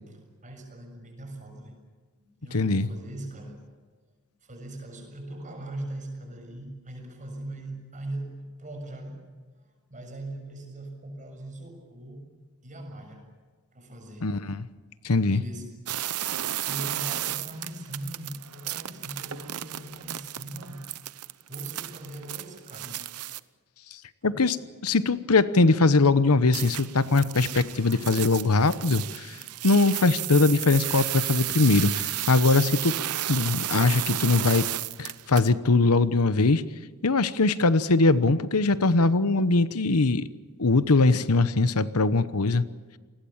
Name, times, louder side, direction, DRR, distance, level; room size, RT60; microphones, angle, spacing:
voice 1, 0.4-1.8 2.2-3.8 4.4-9.2 9.9-12.3 12.6-13.3 13.7-14.4 15.3-15.7 16.1-20.9 21.5-23.1 24.3-24.5, right 1 dB, 35° right, 3 dB, 7.0 m, -40 dB
voice 2, 2.5-2.9 14.2-14.7 15.0-15.4 24.2-24.6 24.8-29.4 29.6-32.9 33.3-34.7 35.0-36.6 37.0-40.3 40.6-42.6, left 3 dB, 75° left, 15 dB, 1.0 m, -21 dB
sound 1, 15.9-23.4 26.5-35.5, right 13 dB, 80° right, 0.8 m, -33 dB
29.0 x 20.5 x 7.3 m, 1.4 s
head